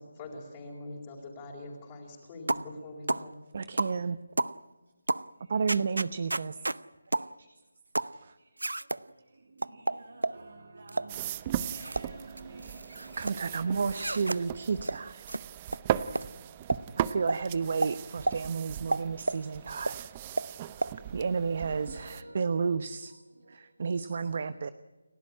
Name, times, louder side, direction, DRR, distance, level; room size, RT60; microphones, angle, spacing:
voice 1, 0.0-3.4, left 2 dB, 20° left, -4 dB, 4.6 m, -43 dB
sound 1, 2.5-2.7 3.1-3.3 3.8-4.0 4.4-4.6 5.1-5.3 5.7-6.8 7.1-7.3 7.9-8.2 8.6-9.0 9.6-10.4 10.9-11.1 11.6-12.1 12.4-13.3 13.9-14.4 14.8-15.0 15.3-15.4 15.7-15.8 16.1-16.3 16.7-16.8 17.3-17.4 17.8-17.9 18.3-18.4 18.9-19.4 19.9-20.0 20.4-20.5 20.8-20.9, right 2 dB, 85° right, 0.7 m, -31 dB
voice 2, 3.5-4.2 5.5-6.6 8.1-8.3 13.2-15.2 17.0-20.0 21.1-23.1 23.5-24.7, right 5 dB, 45° right, 13 dB, 0.9 m, -31 dB
voice 3, 7.1-7.5 9.6-14.2 20.8-22.4 23.4-23.6, right 2 dB, 70° right, 4 dB, 3.1 m, -49 dB
sound 2, 11.1-22.2, right 11 dB, 20° right, 0.7 m, -37 dB
30.0 x 12.5 x 9.8 m, 1.1 s
figure-of-eight pair, 165°, 0 cm